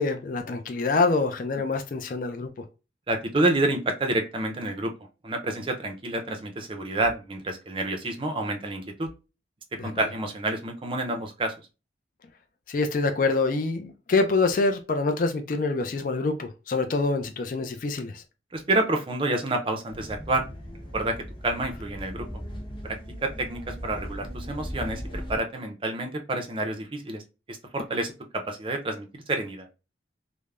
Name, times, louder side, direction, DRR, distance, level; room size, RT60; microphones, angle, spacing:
voice 1, 0.0-2.5 9.8-9.9 12.7-18.2, left 3 dB, 50° left, 0.4 m, -25 dB
voice 2, 3.1-4.9 5.2-9.1 9.8-11.5 18.5-20.5 20.9-21.2 21.4-22.3 22.8-23.0 23.2-27.2 27.5-28.1 28.4-29.7, right 2 dB, 30° right, 0.5 m, -28 dB
sound 1, 19.9-25.4, equal, 30° left, 0.8 m, -38 dB
3.2 x 2.0 x 2.3 m
head